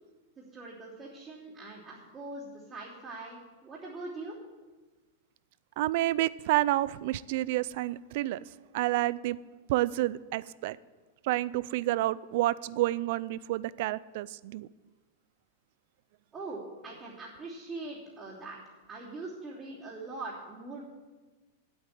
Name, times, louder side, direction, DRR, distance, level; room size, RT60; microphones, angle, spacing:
voice 1, 0.4-4.5 16.3-18.6 18.9-20.8, right 2 dB, 25° right, -8 dB, 3.2 m, -42 dB
voice 2, 5.8-8.4 8.7-9.4 9.7-10.8 11.2-14.7, right 16 dB, 60° right, 20 dB, 0.4 m, -29 dB
8.8 x 8.3 x 9.0 m, 1.3 s
hypercardioid pair, 135°, 0 cm